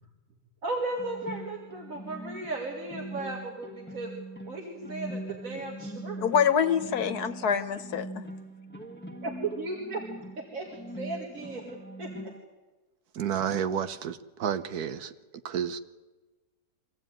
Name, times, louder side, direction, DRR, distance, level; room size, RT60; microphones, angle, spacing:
voice 1, 0.6-4.1 4.4-6.3 9.2-10.0 10.4-12.3, right 3 dB, 60° right, 1 dB, 2.5 m, -36 dB
sound 1, 1.0-12.4, right 1 dB, 5° left, 1.5 m, -42 dB
voice 2, 6.2-8.3, left 7 dB, 85° left, 10 dB, 1.6 m, -26 dB
voice 3, 13.1-15.1 15.4-15.8, right 8 dB, 80° right, 11 dB, 1.4 m, -30 dB
24.5 x 15.0 x 9.0 m, 1.3 s
omnidirectional pair, 1.6 m